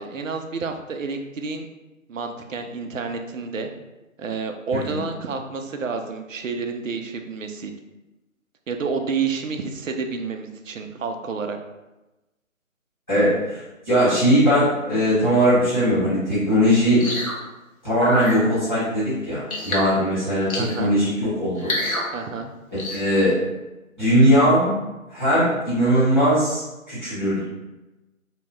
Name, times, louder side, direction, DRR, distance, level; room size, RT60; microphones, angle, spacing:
voice 1, 0.0-1.7 2.1-3.7 4.2-7.7 8.7-11.6 20.6-20.9 22.1-22.5, right 4 dB, 65° right, 5 dB, 0.5 m, -29 dB
voice 2, 13.1-13.6 13.8-17.0 17.8-21.7 22.7-23.4 24.0-24.7 25.1-26.6 26.9-27.5, equal, 5° left, -18 dB, 1.0 m, -19 dB
sound 1, 17.0-17.4 18.0-18.4 19.5-19.9 20.5-20.8 21.6-22.1 22.8-23.0, left 1 dB, 80° left, 1.0 m, -27 dB
2.8 x 2.2 x 3.1 m, 1.0 s
figure-of-eight pair, 155°, 41 cm